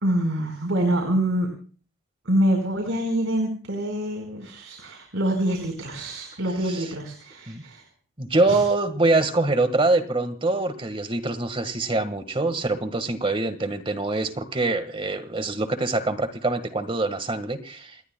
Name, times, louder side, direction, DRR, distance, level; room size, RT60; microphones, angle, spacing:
voice 1, 0.0-1.5 2.2-7.8 8.5-8.6, right 1 dB, 70° right, 2 dB, 4.6 m, -25 dB
voice 2, 8.2-18.1, right 2 dB, 25° right, 10 dB, 1.5 m, -24 dB
29.0 x 19.5 x 2.2 m, 0.40 s
head